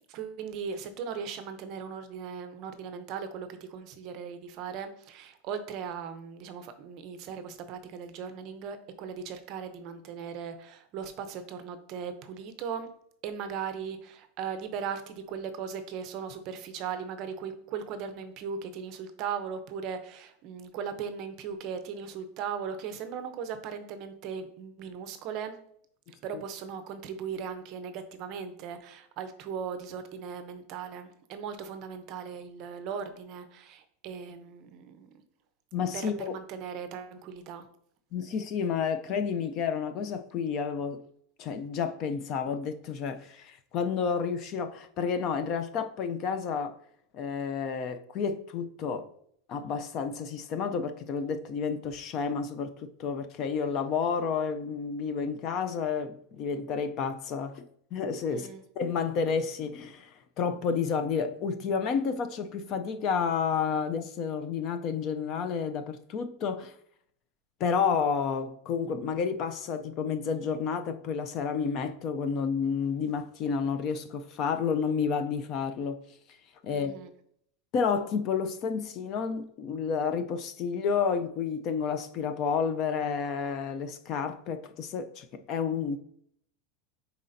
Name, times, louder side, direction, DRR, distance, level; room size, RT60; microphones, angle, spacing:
voice 1, 0.1-12.9 13.2-25.6 26.2-35.1 35.9-37.7 58.3-58.6 76.7-77.1, right 6 dB, 35° right, 0.6 m, -38 dB
voice 2, 35.7-36.3 38.1-41.0 41.4-46.7 47.1-49.1 49.5-57.7 57.9-58.5 58.8-66.7 67.6-76.0 76.6-76.9 77.7-86.0, left 6 dB, 30° left, 0.4 m, -30 dB
9.6 x 4.1 x 2.6 m
supercardioid pair, 180°, 0 cm